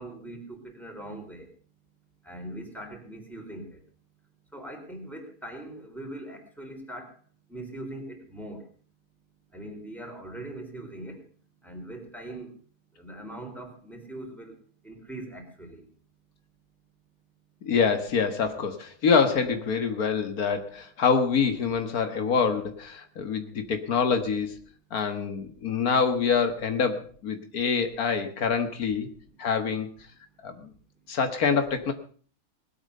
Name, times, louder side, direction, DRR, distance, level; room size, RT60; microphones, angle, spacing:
voice 1, 0.0-1.5 2.2-3.8 4.5-7.1 7.5-8.6 9.5-11.2 11.6-12.5 13.0-14.5 14.8-15.8, right 1 dB, ahead, 2 dB, 4.0 m, -41 dB
voice 2, 17.6-24.6 24.9-29.1 29.4-29.9 30.4-30.7 31.1-31.9, left 5 dB, 85° left, 8 dB, 1.9 m, -26 dB
20.0 x 8.8 x 6.6 m, 0.43 s
omnidirectional pair, 1.5 m